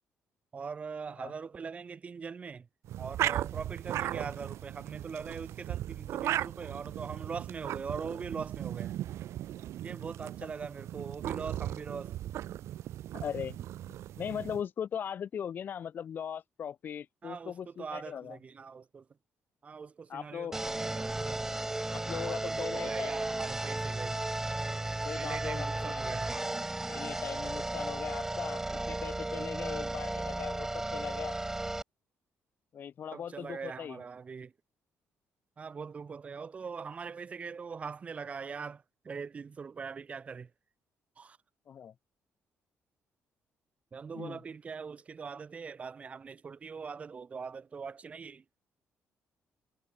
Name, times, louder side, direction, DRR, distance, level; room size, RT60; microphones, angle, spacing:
voice 1, 0.5-2.7 3.0-9.0 9.8-12.3 17.2-19.1 19.6-21.4 22.1-24.2 25.2-26.6 33.1-34.5 35.6-40.5 41.2-41.4 43.9-48.4, right 5 dB, 25° right, 3.4 m, -42 dB
sound 1, 2.8-14.6, right 13 dB, 70° right, 4.1 m, -37 dB
voice 2, 13.1-13.6 14.2-18.4 20.1-20.6 21.9-23.1 25.0-26.0 26.9-31.4 32.7-34.0 41.7-41.9 44.1-44.4, left 8 dB, 40° left, 4.3 m, -39 dB
sound 2, 20.5-31.8, right 2 dB, 10° right, 1.1 m, -34 dB
cardioid pair, 175°, 5 cm